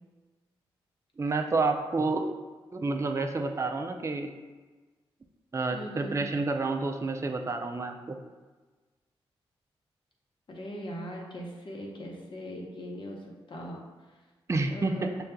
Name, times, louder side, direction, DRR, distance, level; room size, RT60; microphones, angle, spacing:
voice 1, 1.2-2.3 2.7-4.3 5.5-8.2 14.5-15.1, right 3 dB, 25° right, 4 dB, 0.4 m, -29 dB
voice 2, 5.7-6.2 10.5-13.2 13.5-13.8 14.7-15.2, equal, 50° left, -1 dB, 0.9 m, -39 dB
6.4 x 2.4 x 2.2 m, 1.3 s
supercardioid pair, 40°, 11 cm